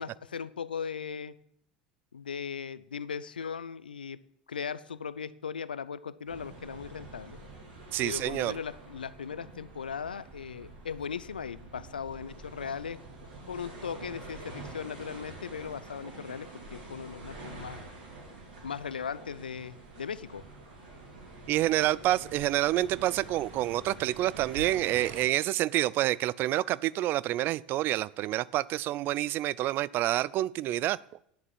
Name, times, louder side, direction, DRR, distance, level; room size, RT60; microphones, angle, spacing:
voice 1, 0.0-1.3 2.1-4.2 4.5-7.4 8.0-13.0 13.5-17.8 18.6-20.5, left 6 dB, 85° left, 17 dB, 0.4 m, -38 dB
sound 1, 6.3-25.2, right 2 dB, 75° right, 4.8 m, -46 dB
voice 2, 7.9-8.6 21.5-31.0, right 15 dB, 45° right, 21 dB, 0.4 m, -28 dB
10.0 x 6.7 x 7.3 m, 0.72 s
hypercardioid pair, 75°, 5 cm